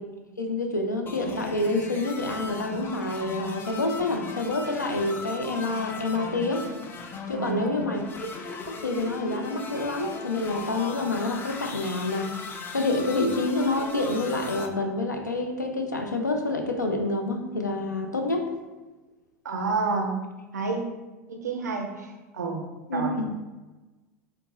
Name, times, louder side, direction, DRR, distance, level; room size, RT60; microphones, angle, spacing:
voice 1, 0.4-6.7 7.3-18.5 22.9-23.3, left 2 dB, 90° left, 4 dB, 0.4 m, -28 dB
sound 1, 1.1-14.7, left 4 dB, 25° left, 0.4 m, -38 dB
voice 2, 7.3-8.0 19.4-20.2 20.5-20.8 21.3-22.6 22.9-23.2, right 4 dB, 75° right, 3 dB, 0.5 m, -29 dB
3.6 x 2.2 x 2.9 m, 1.2 s
figure-of-eight pair, 80°, 9 cm